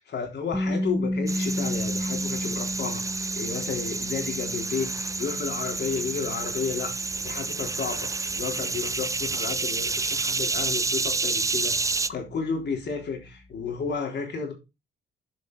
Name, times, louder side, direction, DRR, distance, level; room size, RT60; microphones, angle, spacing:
voice 1, 0.1-14.5, left 5 dB, 60° left, 3.7 m, -32 dB
sound 1, 0.5-12.4, left 1 dB, 5° left, 1.0 m, -34 dB
sound 2, 1.3-12.1, right 3 dB, 15° right, 0.5 m, -29 dB
12.5 x 5.2 x 4.0 m
cardioid pair, 90°, 20 cm